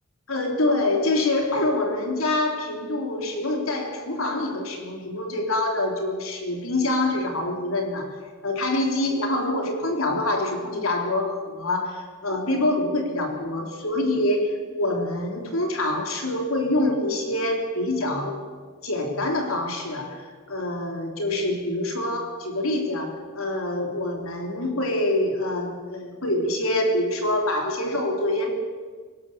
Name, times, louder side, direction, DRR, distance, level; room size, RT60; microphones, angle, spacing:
voice 1, 0.3-8.2 8.4-18.4 18.8-28.5, left 1 dB, 80° left, 3 dB, 3.7 m, -25 dB
21.5 x 19.0 x 6.8 m, 1.5 s
head